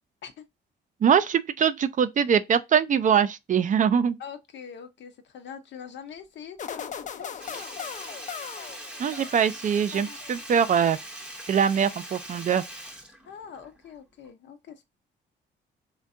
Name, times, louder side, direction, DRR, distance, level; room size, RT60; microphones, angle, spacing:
voice 1, 1.0-4.2 9.0-11.0 11.5-12.6, right 7 dB, 40° right, 0.4 m, -23 dB
voice 2, 4.2-7.7 13.3-14.8, left 7 dB, 65° left, 0.7 m, -43 dB
sound 1, 6.6-9.5 9.9-10.6, left 8 dB, 40° left, 0.4 m, -38 dB
Sink (filling or washing), 7.4-13.9 14.2-14.3, right 1 dB, 5° right, 0.7 m, -42 dB
3.4 x 2.2 x 2.6 m
cardioid pair, 90°, 20 cm